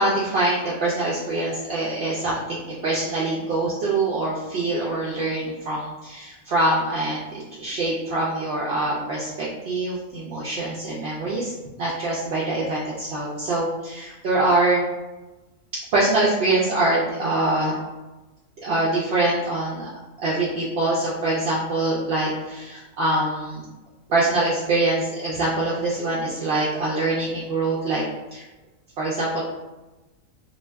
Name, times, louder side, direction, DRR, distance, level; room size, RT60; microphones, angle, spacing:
voice 1, 0.0-14.8 15.9-17.7 18.6-19.9 20.2-23.7 24.1-28.0 28.3-28.4 29.0-29.4, right 2 dB, 65° right, -6 dB, 0.6 m, -24 dB
2.4 x 2.2 x 3.2 m, 1.1 s
omnidirectional pair, 1.5 m